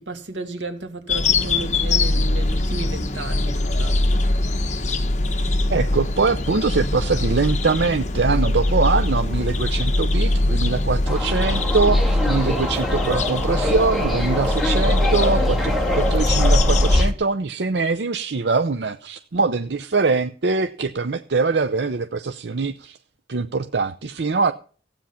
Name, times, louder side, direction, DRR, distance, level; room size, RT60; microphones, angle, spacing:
voice 1, 0.0-4.2, right 2 dB, 90° right, 2.3 m, -33 dB
sound 1, 1.1-17.1, left 2 dB, 40° left, 1.1 m, -21 dB
voice 2, 5.7-23.0 23.3-24.5, right 4 dB, 70° right, 0.6 m, -23 dB
Subway metro underground, 11.1-17.0, left 1 dB, ahead, 2.6 m, -26 dB
15.0 x 8.9 x 5.7 m
head